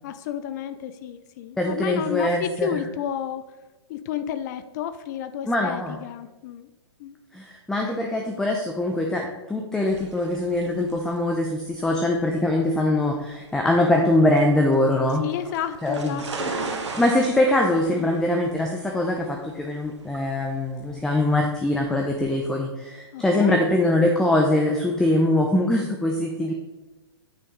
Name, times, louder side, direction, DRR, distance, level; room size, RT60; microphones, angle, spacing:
voice 1, 0.0-3.4 3.9-6.7 7.0-7.2 15.2-16.7 18.0-18.2 23.1-23.6, left 9 dB, 40° left, 12 dB, 0.5 m, -31 dB
voice 2, 1.6-2.7 5.5-6.0 7.3-15.2 15.8-16.6 17.0-26.5, left 1 dB, 5° left, 1 dB, 0.8 m, -23 dB
sound 1, 9.9-22.2, right 4 dB, 80° right, 1.9 m, -38 dB
9.2 x 5.8 x 3.9 m, 1.1 s
hypercardioid pair, 130°, 15 cm